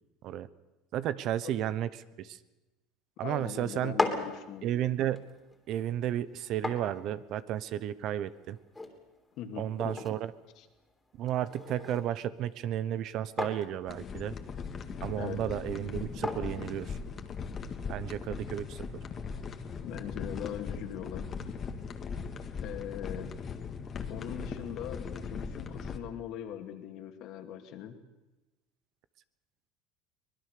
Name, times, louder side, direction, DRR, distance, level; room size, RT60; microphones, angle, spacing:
voice 1, 0.9-1.9 2.2-2.4 3.2-4.0 4.6-5.2 5.7-8.6 9.6-10.3 11.2-14.3 15.0-17.0 17.9-18.8, right 11 dB, 55° right, 16 dB, 1.0 m, -33 dB
voice 2, 3.2-4.7 9.4-10.1 10.6-10.7 15.2-15.4 19.8-21.3 22.6-23.3 24.1-28.0, left 10 dB, 55° left, 6 dB, 2.6 m, -41 dB
Ceramic Mug Cup, 3.7-17.6, left 2 dB, 10° left, 3.4 m, -40 dB
sound 1, 13.9-26.0, left 5 dB, 30° left, 2.0 m, -39 dB
24.0 x 20.0 x 6.8 m, 1.1 s
supercardioid pair, 115°, 0 cm